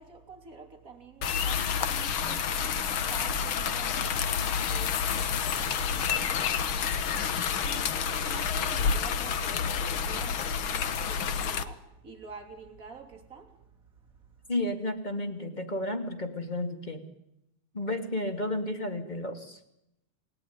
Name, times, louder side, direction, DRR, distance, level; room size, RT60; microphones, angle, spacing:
voice 1, 0.0-4.3 4.6-14.5, right 5 dB, 25° right, 3.4 m, -48 dB
sound 1, 1.2-11.6, left 7 dB, 55° left, 1.6 m, -29 dB
voice 2, 14.5-17.0 17.7-19.6, left 1 dB, 15° left, 2.4 m, -32 dB
29.0 x 18.5 x 9.7 m
omnidirectional pair, 3.5 m